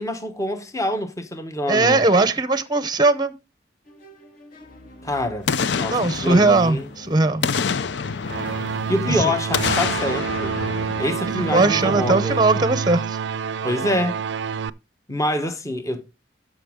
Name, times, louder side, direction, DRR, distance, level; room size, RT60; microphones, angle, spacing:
voice 1, 0.0-2.0 5.0-5.5 5.7-6.9 8.9-10.6 11.0-12.4 13.6-14.2 15.1-16.0, left 1 dB, 20° left, 1.0 m, -25 dB
voice 2, 1.7-3.3 5.9-7.5 9.1-9.3 11.5-13.2, right 3 dB, 25° right, 0.7 m, -19 dB
sound 1, 3.9-12.4, left 1 dB, 50° left, 2.3 m, -43 dB
Boom, 5.5-7.0 7.4-9.1 9.5-11.8 12.1-12.2, left 6 dB, 70° left, 0.5 m, -27 dB
sound 2, 8.3-14.7, right 6 dB, 75° right, 0.4 m, -27 dB
13.5 x 5.2 x 3.6 m
head